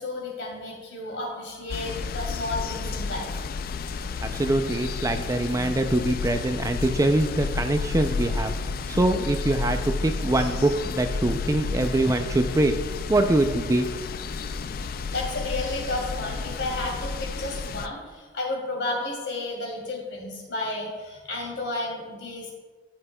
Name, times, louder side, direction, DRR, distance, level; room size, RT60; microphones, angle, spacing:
voice 1, 0.0-3.3 15.1-22.5, left 2 dB, 70° left, -2 dB, 2.7 m, -32 dB
sound 1, 1.7-17.9, left 4 dB, 50° left, 0.4 m, -31 dB
voice 2, 4.2-12.7 13.1-13.9, right 2 dB, 15° right, 7 dB, 0.4 m, -24 dB
14.0 x 7.5 x 2.2 m, 1.4 s
head